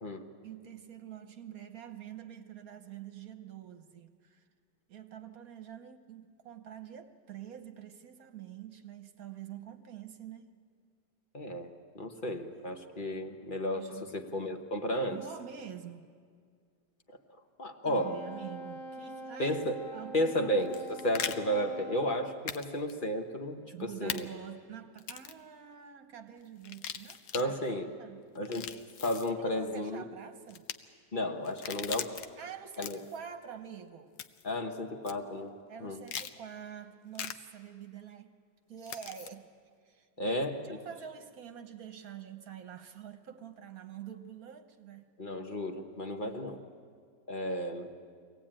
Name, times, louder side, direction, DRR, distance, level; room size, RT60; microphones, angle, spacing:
voice 1, 0.4-4.4 4.9-10.5 12.3-12.9 13.7-14.1 14.9-16.1 17.8-19.6 19.9-20.5 23.7-27.5 28.0-28.2 29.4-30.6 32.4-34.1 35.7-38.3 38.7-39.5 39.8-45.1 46.2-46.6, right 9 dB, 60° right, 8 dB, 1.4 m, -46 dB
voice 2, 11.3-15.2 17.6-18.2 19.4-19.8 20.1-24.3 27.3-27.9 28.3-30.0 31.1-32.2 32.8-33.0 34.4-35.5 35.8-36.0 40.2-40.8 45.2-46.6 47.3-47.9, left 1 dB, 35° left, 5 dB, 1.1 m, -33 dB
Wind instrument woodwind instrument, 17.9-22.4, right 2 dB, 50° left, 1.6 m, -45 dB
sound 1, 20.6-21.4 22.5-22.6 22.9-23.0 24.1-24.2 25.0-25.4 26.6-27.4 28.4-29.3 30.5-30.8 31.5-32.3 32.7-33.2 34.2-34.5 35.1-35.2 36.1-36.3 37.2-37.3 38.9-39.3, left 9 dB, 70° left, 1.3 m, -39 dB
24.0 x 17.5 x 8.9 m, 2.1 s
omnidirectional pair, 1.9 m